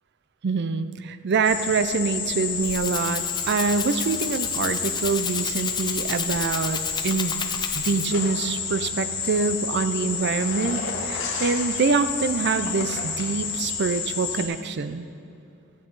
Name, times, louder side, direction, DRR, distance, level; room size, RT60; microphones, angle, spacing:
voice 1, 0.4-7.4 7.7-15.1, right 4 dB, 55° right, 11 dB, 0.5 m, -25 dB
sound 1, 1.4-14.5, left 6 dB, 90° left, 1.6 m, -30 dB
Rattle (instrument), 2.4-8.3, left 6 dB, 20° left, 0.5 m, -32 dB
sound 2, 8.1-13.6, left 3 dB, 60° left, 1.3 m, -38 dB
13.5 x 9.0 x 4.0 m, 2.6 s
head